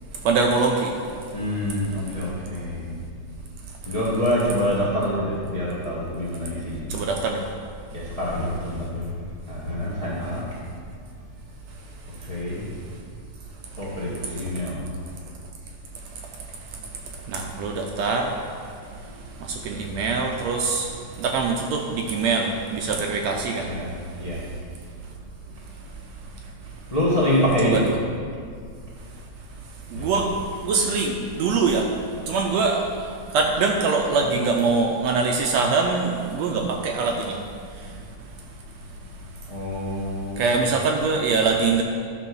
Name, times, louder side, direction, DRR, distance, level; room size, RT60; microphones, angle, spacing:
voice 1, 0.2-0.9 6.9-7.5 17.3-18.4 19.4-23.7 27.6-28.0 29.9-31.9 32.3-37.4 40.4-41.8, right 4 dB, 75° right, 2 dB, 1.7 m, -23 dB
voice 2, 1.3-2.9 3.9-6.8 7.9-9.1 9.5-10.4 12.3-12.8 13.8-14.8 23.6-23.9 24.2-24.4 26.9-27.9 29.9-30.2 39.5-40.6, equal, 30° left, -7 dB, 0.6 m, -26 dB
11.0 x 3.9 x 6.1 m, 2.2 s
omnidirectional pair, 3.4 m